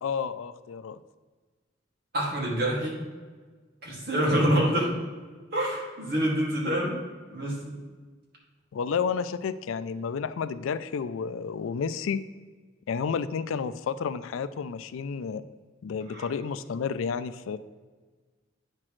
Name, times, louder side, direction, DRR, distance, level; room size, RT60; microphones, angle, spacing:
voice 1, 0.0-1.0 8.7-12.2 12.9-15.4 15.8-17.6, left 6 dB, 90° left, 13 dB, 0.4 m, -31 dB
voice 2, 2.1-3.0 3.8-4.9 5.5-7.0 7.3-7.6 16.1-16.3, right 1 dB, 50° right, -3 dB, 2.1 m, -26 dB
8.7 x 5.9 x 3.1 m, 1.4 s
head